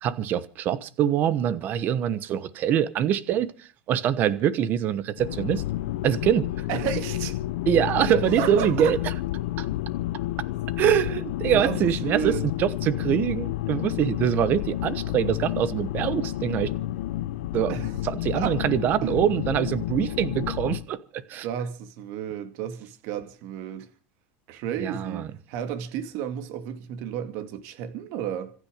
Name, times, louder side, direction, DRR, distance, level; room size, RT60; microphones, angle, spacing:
voice 1, 0.0-5.6 6.0-6.7 7.7-9.0 9.6-9.7 10.8-16.7 17.5-17.7 18.0-21.5 24.8-25.3, right 10 dB, 30° right, 1.2 m, -24 dB
sound 1, 5.2-20.8, left 15 dB, 80° left, 0.9 m, -30 dB
voice 2, 6.7-7.4 8.0-8.9 11.0-12.5 17.7-18.1 18.3-18.6 19.0-19.2 21.4-23.9 24.5-28.5, right 9 dB, 45° right, 2.2 m, -32 dB
26.0 x 9.8 x 5.1 m
supercardioid pair, 175°, 6 cm